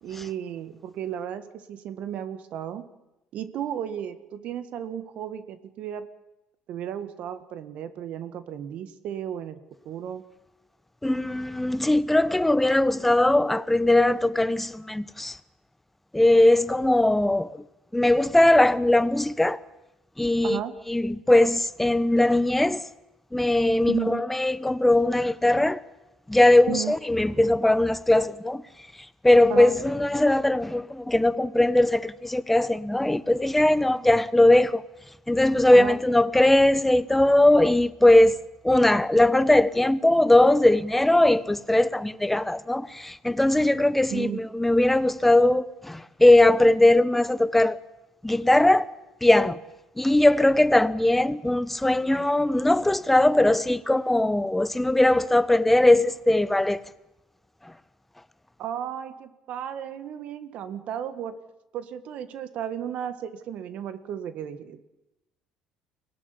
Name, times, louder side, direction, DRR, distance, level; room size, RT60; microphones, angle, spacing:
voice 1, 0.0-2.9 3.3-6.1 6.7-9.6 9.8-10.2 20.4-20.7 23.9-24.2 26.7-26.9 29.5-29.8 35.7-36.0 44.1-44.4 58.6-61.3 61.7-64.8, right 10 dB, 65° right, 1.7 m, -34 dB
voice 2, 11.0-15.4 16.1-17.6 17.9-19.6 20.2-20.6 20.9-22.8 23.3-25.8 26.3-28.6 29.2-34.8 35.3-38.4 38.6-47.8 48.2-48.9 49.2-49.6 50.0-56.8, left 1 dB, 10° left, 1.1 m, -20 dB
23.5 x 18.0 x 9.9 m
supercardioid pair, 90°, 2 cm